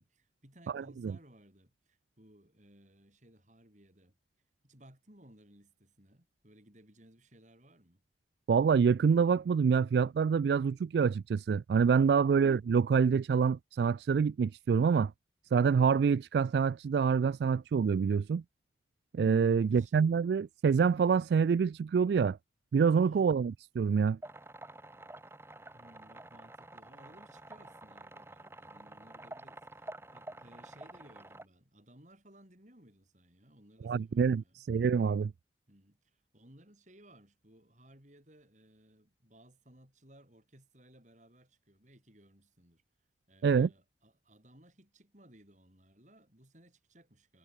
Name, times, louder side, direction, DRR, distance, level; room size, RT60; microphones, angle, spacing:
voice 1, 0.0-4.2 4.6-8.0 19.5-20.0 23.0-23.3 25.7-34.6 35.7-42.8 43.3-47.4, right 1 dB, 45° right, 8.0 m, -60 dB
voice 2, 8.5-15.1 15.5-18.4 19.1-22.4 22.7-24.2 33.8-35.3 43.4-43.7, right 6 dB, 65° right, 0.3 m, -26 dB
sound 1, 24.2-31.4, right 2 dB, 15° right, 1.4 m, -49 dB
head